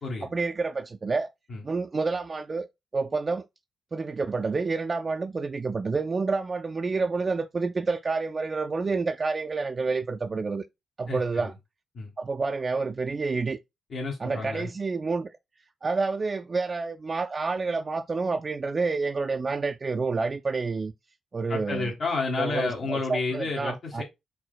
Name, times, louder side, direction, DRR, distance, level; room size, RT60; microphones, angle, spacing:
voice 1, 0.2-1.3 1.6-2.7 2.9-3.5 3.9-10.7 11.0-11.5 12.2-13.6 14.2-15.4 15.8-20.9 21.3-21.9 22.4-24.0, right 4 dB, 40° right, 0.4 m, -29 dB
voice 2, 11.1-11.5 11.9-12.1 13.9-14.7 21.5-24.0, left 3 dB, 65° left, 1.7 m, -31 dB
4.6 x 4.0 x 2.2 m
supercardioid pair, 50°, 0 cm